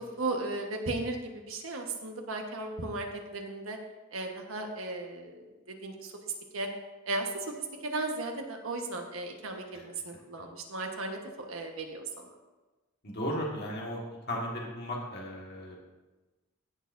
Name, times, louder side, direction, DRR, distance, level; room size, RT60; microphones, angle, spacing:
voice 1, 0.2-3.8 4.1-6.1 6.5-6.7 7.0-7.5 7.8-11.2 11.5-12.3, right 2 dB, 80° right, 3 dB, 1.4 m, -36 dB
voice 2, 13.0-14.0 14.3-15.8, equal, 50° left, -3 dB, 1.8 m, -35 dB
16.5 x 6.7 x 2.7 m, 1.2 s
head